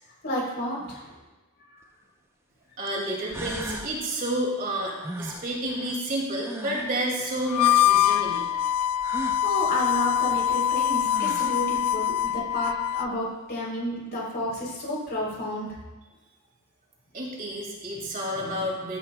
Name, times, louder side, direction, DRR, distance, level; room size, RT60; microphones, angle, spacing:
voice 1, 0.2-1.1 9.4-15.7, equal, 50° left, -3 dB, 3.5 m, -31 dB
sound 1, 1.8-1.9 2.9-3.0 3.3-4.0 5.0-7.0 9.0-9.4 10.7-10.8 11.0-11.7, right 1 dB, 10° right, 0.7 m, -37 dB
voice 2, 2.8-8.5 17.1-19.0, right 1 dB, 40° right, -2 dB, 2.3 m, -30 dB
Harmonica, 7.5-13.1, left 11 dB, 85° left, 0.3 m, -24 dB
14.0 x 10.0 x 2.3 m, 1.1 s
head